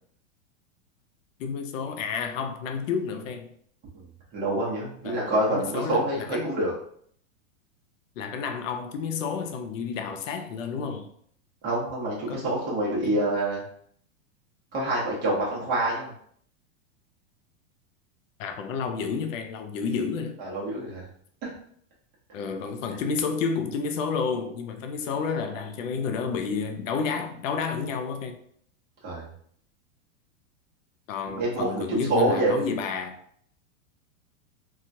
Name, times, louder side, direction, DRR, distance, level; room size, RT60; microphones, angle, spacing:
voice 1, 1.4-3.5 5.0-6.5 8.2-11.1 12.3-12.5 13.0-13.2 18.4-20.4 22.3-28.4 31.1-33.2, left 5 dB, 70° left, 6 dB, 0.5 m, -30 dB
voice 2, 4.3-6.7 11.6-13.6 14.7-16.1 20.4-21.0 21.4-21.5 29.0-29.2 31.3-32.6, right 1 dB, 25° right, -5 dB, 0.9 m, -26 dB
2.9 x 2.3 x 2.6 m, 0.62 s
supercardioid pair, 150°, 40 cm